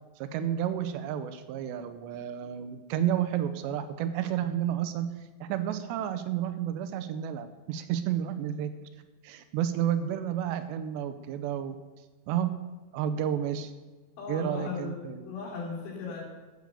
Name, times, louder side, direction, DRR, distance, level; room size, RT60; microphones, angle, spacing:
voice 1, 0.2-5.1 5.4-8.7 9.2-11.8 12.3-12.5 12.9-13.7 14.3-15.3, right 10 dB, 80° right, 10 dB, 2.7 m, -31 dB
voice 2, 14.2-16.2, left 4 dB, 85° left, -4 dB, 5.8 m, -37 dB
13.0 x 7.8 x 6.9 m, 1.3 s
omnidirectional pair, 5.3 m